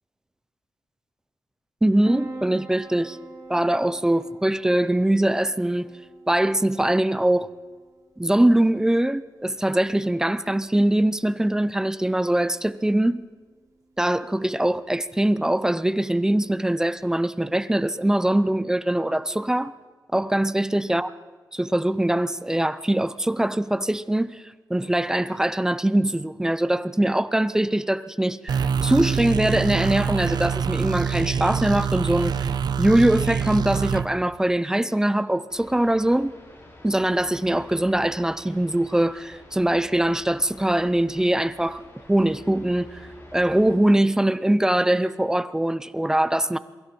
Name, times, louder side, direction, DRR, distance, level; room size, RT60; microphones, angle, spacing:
voice 1, 1.8-3.2 3.5-5.9 6.3-7.5 8.2-13.2 14.0-19.7 20.1-21.1 21.5-32.5 32.8-36.3 36.8-41.8 42.1-43.0 43.3-46.6, right 1 dB, 10° right, 0.5 m, -22 dB
Piano, 2.0-17.0, right 3 dB, 45° right, 5.0 m, -45 dB
sound 1, 28.5-34.0, right 7 dB, 70° right, 0.8 m, -25 dB
sound 2, 35.5-43.8, left 1 dB, 35° left, 5.2 m, -48 dB
28.0 x 23.0 x 4.4 m
wide cardioid pair, 155°, 7 cm